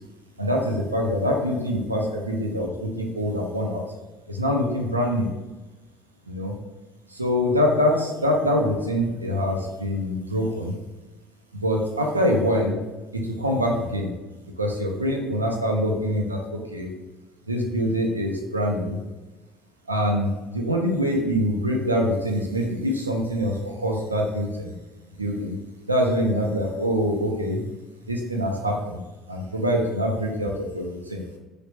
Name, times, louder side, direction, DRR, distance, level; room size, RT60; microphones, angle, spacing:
voice 1, 0.4-3.8 4.3-5.3 6.3-6.5 7.1-10.7 11.6-12.8 13.2-14.1 14.6-16.9 17.5-19.0 19.9-24.7 25.2-25.6 25.9-27.6 28.1-29.0 29.3-31.2, equal, 90° right, 0 dB, 0.3 m, -24 dB
3.1 x 2.4 x 2.8 m, 1.1 s
figure-of-eight pair, 60°, 0 cm